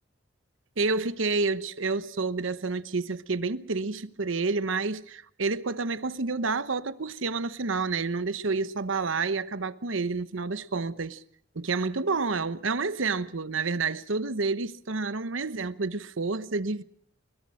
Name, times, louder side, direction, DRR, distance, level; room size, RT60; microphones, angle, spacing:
voice 1, 0.8-11.2 11.5-16.8, right 4 dB, 80° right, 1.0 m, -29 dB
23.5 x 22.0 x 6.4 m
head